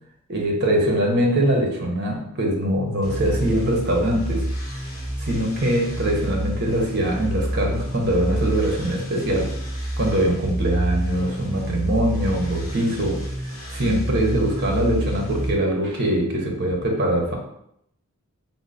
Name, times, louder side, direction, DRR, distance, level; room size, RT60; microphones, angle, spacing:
voice 1, 0.3-4.5 5.2-9.5 10.0-17.3, right 1 dB, 50° right, 0 dB, 0.8 m, -23 dB
sound 1, 3.0-15.5, right 1 dB, 65° left, 0.9 m, -28 dB
3.8 x 2.0 x 3.8 m, 0.74 s
head